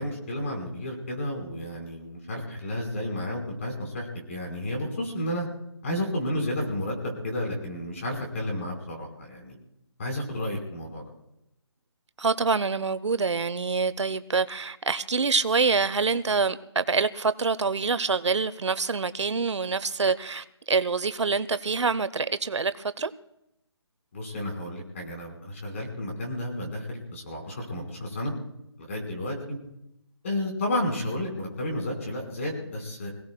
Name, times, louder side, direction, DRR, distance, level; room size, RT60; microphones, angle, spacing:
voice 1, 0.0-5.5 5.8-9.5 10.0-11.1 24.1-28.3 28.8-29.6 30.2-33.1, left 1 dB, 30° left, 1 dB, 4.6 m, -32 dB
voice 2, 12.2-23.1, right 4 dB, 80° right, 14 dB, 0.9 m, -26 dB
27.0 x 17.0 x 2.3 m, 0.83 s
hypercardioid pair, 175°, 15 cm